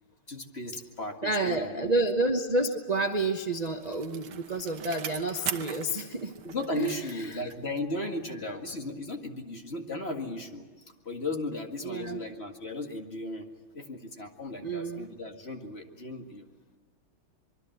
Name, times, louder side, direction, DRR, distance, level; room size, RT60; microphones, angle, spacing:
voice 1, 0.3-1.9 6.4-13.5 13.7-16.4, left 2 dB, 30° left, 3 dB, 2.0 m, -36 dB
voice 2, 1.2-6.3 6.7-7.4 11.8-12.2 14.6-15.1, right 2 dB, 30° right, 5 dB, 0.7 m, -29 dB
Bicycle, 3.1-8.0 8.4-8.5, right 8 dB, 75° right, 1.9 m, -41 dB
25.0 x 23.0 x 8.0 m, 1.3 s
omnidirectional pair, 2.3 m